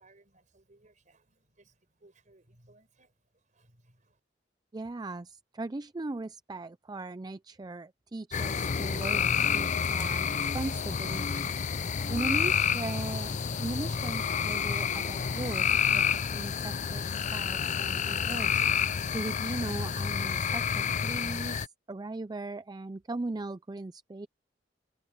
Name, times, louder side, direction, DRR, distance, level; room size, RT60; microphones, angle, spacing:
voice 1, 0.0-4.2, right 2 dB, 45° right, 5.2 m, -63 dB
voice 2, 4.7-11.5 12.1-18.6 19.1-24.3, right 2 dB, 20° right, 0.4 m, -38 dB
sound 1, 8.3-21.7, left 7 dB, 40° left, 0.5 m, -29 dB
head